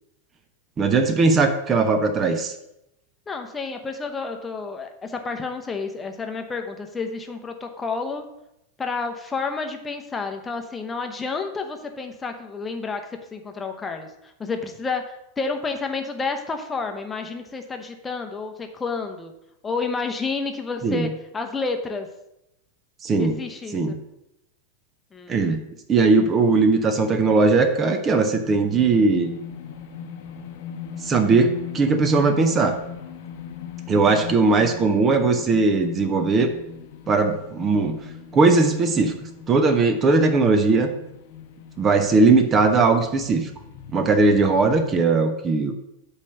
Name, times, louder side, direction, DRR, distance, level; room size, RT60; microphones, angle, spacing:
voice 1, 0.8-2.5 20.8-21.1 23.0-23.4 23.7-23.9 25.3-25.6 25.9-29.3 31.0-32.7 33.9-36.5 37.1-38.0 38.3-39.1 39.5-40.9 41.8-43.5 43.9-45.7, right 3 dB, 25° right, 8 dB, 0.7 m, -19 dB
voice 2, 3.3-8.3 8.8-13.0 13.3-19.3 19.6-22.1 23.2-24.0 25.1-25.5, left 4 dB, 15° left, 4 dB, 0.8 m, -30 dB
sound 1, 28.4-45.0, left 8 dB, 50° left, 0.8 m, -39 dB
8.3 x 3.3 x 6.5 m, 0.85 s
figure-of-eight pair, 90°, 0 cm